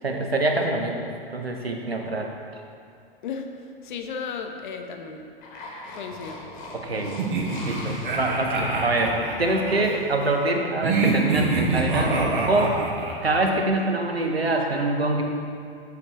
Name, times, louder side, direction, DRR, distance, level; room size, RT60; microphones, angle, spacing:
voice 1, 0.0-2.3 6.7-7.2 7.7-12.8 13.2-15.2, right 2 dB, 90° right, 2 dB, 0.8 m, -25 dB
voice 2, 3.8-5.3 5.9-6.4, left 6 dB, 55° left, 5 dB, 0.7 m, -34 dB
sound 1, 5.4-10.6, left 1 dB, 30° left, 1.1 m, -40 dB
sound 2, 7.2-9.9 10.8-13.4, right 3 dB, 55° right, 1.1 m, -25 dB
6.8 x 4.6 x 3.9 m, 2.4 s
figure-of-eight pair, 100°, 30 cm